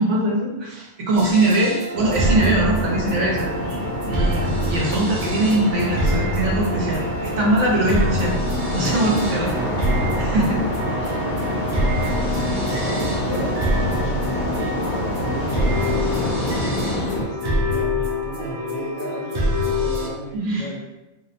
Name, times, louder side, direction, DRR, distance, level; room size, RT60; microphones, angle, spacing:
voice 1, 0.0-3.8 4.0-8.4 8.7-9.5 10.2-10.6 11.0-11.1 20.3-20.6, right 1 dB, 70° right, -2 dB, 0.8 m, -22 dB
sound 1, 1.1-20.1, equal, 85° right, 0.4 m, -26 dB
sound 2, 2.0-17.2, equal, 90° left, 1.0 m, -26 dB
voice 2, 12.3-20.8, equal, 60° left, -3 dB, 0.6 m, -35 dB
2.6 x 2.0 x 2.6 m, 0.99 s
omnidirectional pair, 1.4 m